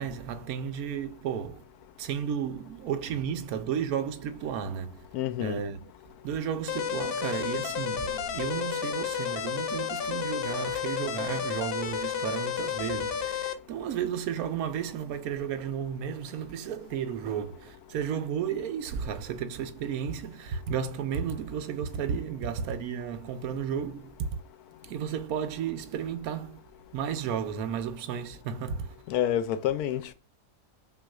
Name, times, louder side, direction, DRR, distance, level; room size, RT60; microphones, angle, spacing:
voice 1, 0.0-1.6 2.0-5.0 5.4-5.9 6.2-24.3 24.8-26.6 26.9-28.9, right 8 dB, 75° right, 1.1 m, -33 dB
voice 2, 5.1-5.6 29.1-30.1, left 11 dB, 85° left, 1.1 m, -28 dB
sound 1, 6.7-13.5, left 8 dB, 65° left, 0.5 m, -31 dB
5.6 x 2.7 x 2.3 m
omnidirectional pair, 1.6 m